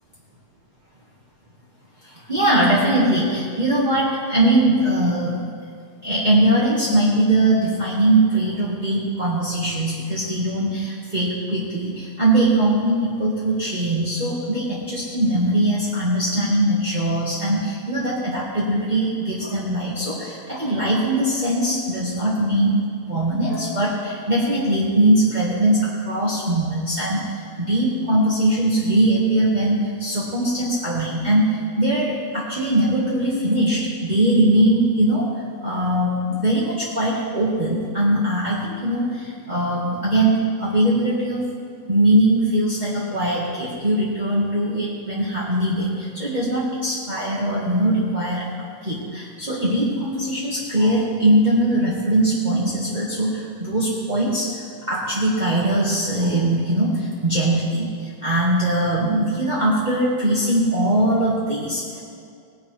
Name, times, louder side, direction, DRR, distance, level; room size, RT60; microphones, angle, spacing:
voice 1, 2.0-5.4 6.0-22.8 23.1-35.3 35.6-41.4 41.9-48.5 48.8-62.0, right 1 dB, 25° right, -8 dB, 1.7 m, -21 dB
19.0 x 10.5 x 3.3 m, 2.3 s
omnidirectional pair, 1.8 m